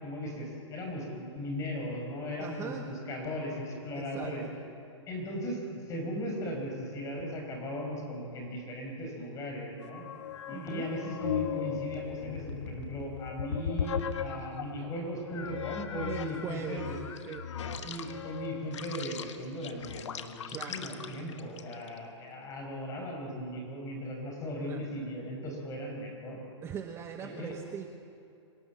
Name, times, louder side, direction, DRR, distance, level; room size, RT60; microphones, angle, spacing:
voice 1, 0.0-4.4 5.1-5.6 5.9-10.0 10.5-17.0 17.8-26.4 27.2-27.5, equal, 20° left, 1 dB, 5.5 m, -37 dB
voice 2, 2.4-2.9 4.0-4.6 10.5-10.9 16.0-17.5 20.5-20.8 24.6-24.8 26.6-27.9, right 8 dB, 15° right, 5 dB, 0.8 m, -41 dB
sound 1, 9.8-14.8 15.3-22.0, left 8 dB, 70° left, 1.5 m, -37 dB
25.5 x 17.5 x 7.4 m, 2.6 s
hypercardioid pair, 145°, 16 cm